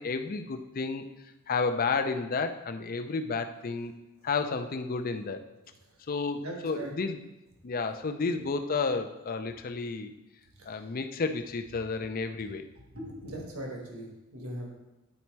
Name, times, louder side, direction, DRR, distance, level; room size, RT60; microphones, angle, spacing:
voice 1, 0.0-3.9 4.2-5.5 6.1-7.2 7.6-10.1 10.7-12.7, left 4 dB, 40° left, 8 dB, 0.5 m, -31 dB
voice 2, 6.4-6.9 8.3-8.4 10.5-11.0 12.9-14.7, right 1 dB, 70° right, 0 dB, 1.5 m, -40 dB
9.6 x 4.2 x 4.5 m, 0.98 s
head